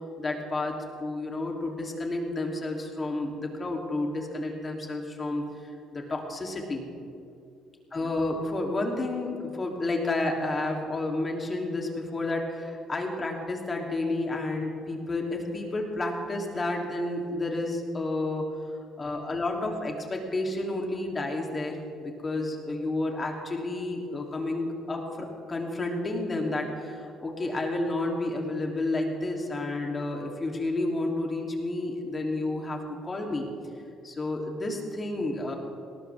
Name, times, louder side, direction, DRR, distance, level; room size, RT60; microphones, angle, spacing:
voice 1, 0.2-6.9 7.9-18.4 19.0-33.5 34.0-35.6, left 2 dB, 30° left, 1 dB, 3.3 m, -31 dB
19.5 x 18.0 x 3.6 m, 2.5 s
supercardioid pair, 65°, 0 cm